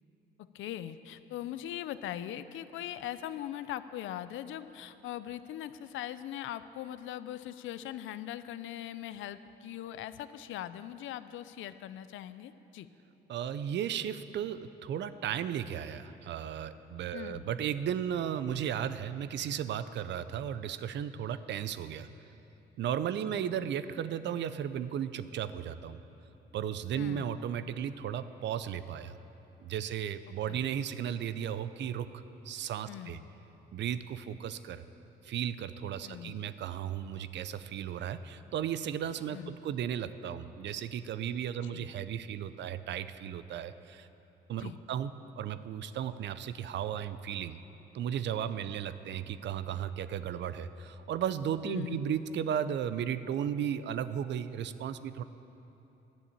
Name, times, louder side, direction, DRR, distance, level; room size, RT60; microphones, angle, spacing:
voice 1, 0.5-12.9 17.1-17.5 23.3-23.5 27.0-27.4 30.5-30.7 32.9-33.3 36.0-36.4 39.3-39.5 41.6-41.9 44.6-44.8 51.6-52.2, left 12 dB, 80° left, 13 dB, 0.5 m, -41 dB
voice 2, 13.3-22.1 22.8-26.0 26.5-29.2 29.6-33.2 33.7-34.8 35.2-44.1 44.5-47.6 47.9-55.2, right 9 dB, 65° right, 13 dB, 0.5 m, -35 dB
11.0 x 7.1 x 8.4 m, 3.0 s
cardioid pair, 90°, 20 cm